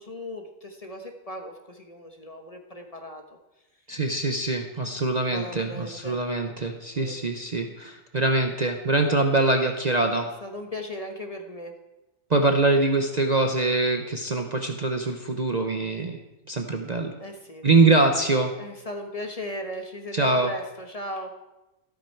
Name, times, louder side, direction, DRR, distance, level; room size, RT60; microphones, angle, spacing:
voice 1, 0.0-3.4 4.9-5.0 5.3-6.2 7.0-7.2 10.4-11.7 17.2-17.6 18.6-21.3, left 1 dB, 30° left, 4 dB, 1.3 m, -37 dB
voice 2, 3.9-10.3 12.3-16.2 16.5-17.1 17.6-18.5 20.1-20.5, right 2 dB, 35° right, 4 dB, 0.9 m, -23 dB
13.5 x 12.5 x 4.6 m, 0.98 s
omnidirectional pair, 1.4 m